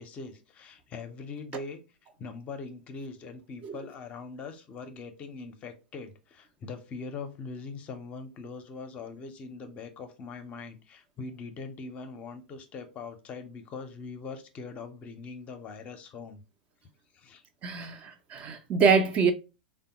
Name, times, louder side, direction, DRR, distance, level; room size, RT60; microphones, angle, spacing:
voice 1, 0.0-1.8 2.2-16.4 17.1-17.4, left 4 dB, 30° left, 0.5 m, -42 dB
voice 2, 17.6-19.3, right 5 dB, 30° right, 0.4 m, -25 dB
3.3 x 2.1 x 2.8 m
figure-of-eight pair, 105°, 5 cm